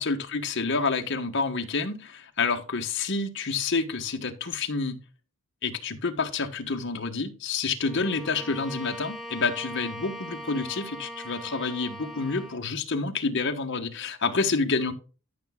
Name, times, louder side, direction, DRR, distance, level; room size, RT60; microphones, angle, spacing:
voice 1, 0.0-5.0 5.6-14.9, left 4 dB, 55° left, 1.3 m, -28 dB
Bowed string instrument, 7.8-12.7, equal, ahead, 1.0 m, -40 dB
13.5 x 6.0 x 2.3 m
head